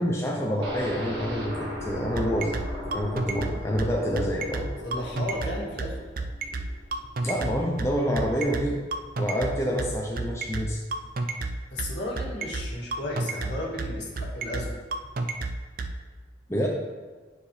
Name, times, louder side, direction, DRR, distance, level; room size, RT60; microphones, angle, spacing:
voice 1, 0.0-2.6 2.9-4.7 7.2-8.8 9.2-10.8 16.5-16.7, equal, 15° left, -2 dB, 0.6 m, -27 dB
sound 1, 0.6-8.5 8.8-8.9 9.3-9.4, left 1 dB, 70° right, 1.7 m, -39 dB
sound 2, 2.2-15.9, right 3 dB, 50° right, 0.5 m, -30 dB
voice 2, 4.8-6.0 11.7-14.8, left 1 dB, 70° left, -3 dB, 1.8 m, -34 dB
9.5 x 4.7 x 3.2 m, 1.4 s
head